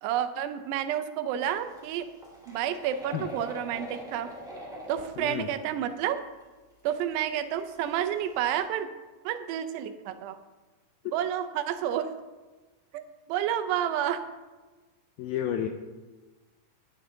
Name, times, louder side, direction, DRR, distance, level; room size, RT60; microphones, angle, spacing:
voice 1, 0.0-2.1 2.5-4.3 4.9-6.2 6.8-8.9 9.2-10.4 11.1-12.1 12.9-14.2, right 10 dB, 80° right, 10 dB, 2.7 m, -30 dB
sound 1, 1.5-5.4 5.9-6.0 6.4-6.5 7.3-7.4 7.6-8.7, equal, ahead, 1.0 m, -43 dB
voice 2, 5.2-5.5 15.2-15.7, left 10 dB, 90° left, 5 dB, 2.1 m, -30 dB
11.5 x 11.0 x 3.8 m, 1.2 s
omnidirectional pair, 4.9 m